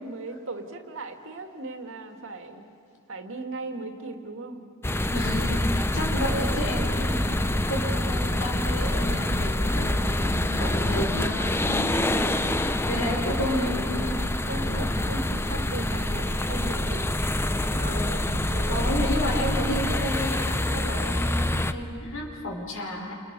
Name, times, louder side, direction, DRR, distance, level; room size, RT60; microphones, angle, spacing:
voice 1, 0.0-2.6 3.1-4.7 5.9-6.0 14.5-17.1 17.5-18.0 18.5-18.9, right 2 dB, 65° right, 5 dB, 2.2 m, -38 dB
sound 1, 4.8-21.7, left 1 dB, 10° left, 0.7 m, -26 dB
voice 2, 5.1-7.3 7.6-12.4 12.9-14.1 14.6-14.9 15.3-15.6 17.7-18.2 18.7-23.1, equal, 65° left, 1 dB, 4.9 m, -31 dB
29.5 x 28.0 x 6.9 m, 2.4 s
head